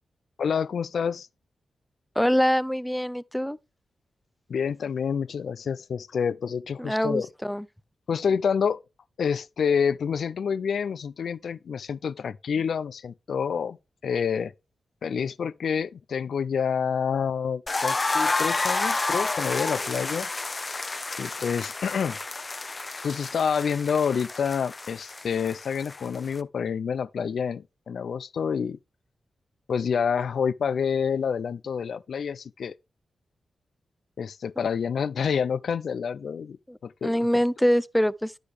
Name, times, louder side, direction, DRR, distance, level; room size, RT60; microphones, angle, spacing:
voice 1, 0.4-1.3 4.5-7.3 8.1-8.8 9.2-13.8 14.0-14.5 15.0-20.3 21.2-22.2 23.0-28.8 29.7-32.7 34.2-36.6 36.8-37.3, left 6 dB, 75° left, 0.4 m, -28 dB
voice 2, 2.2-3.6 6.8-7.7 36.7-38.4, equal, 5° left, 0.5 m, -24 dB
sound 1, 17.7-26.4, left 3 dB, 35° left, 0.7 m, -30 dB
9.9 x 6.5 x 3.3 m
cardioid pair, 55°, 0 cm